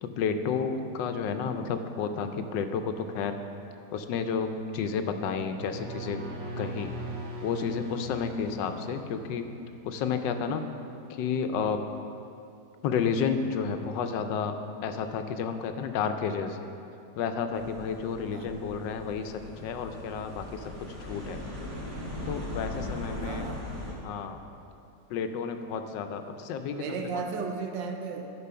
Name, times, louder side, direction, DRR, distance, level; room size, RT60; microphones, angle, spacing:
voice 1, 0.0-3.4 3.9-6.2 6.6-6.9 7.4-9.5 9.8-10.7 11.1-11.8 12.8-14.6 14.8-16.6 17.2-21.4 22.3-23.5 24.0-24.4 25.1-26.8, left 6 dB, 85° left, 8 dB, 1.3 m, -31 dB
sound 1, 5.3-9.6, right 1 dB, 65° right, 1.7 m, -40 dB
sound 2, 17.5-23.9, left 1 dB, 20° right, 2.5 m, -39 dB
voice 2, 23.2-23.6 26.7-28.3, right 5 dB, 90° right, 4 dB, 1.4 m, -35 dB
11.0 x 5.1 x 5.6 m, 2.6 s
omnidirectional pair, 1.9 m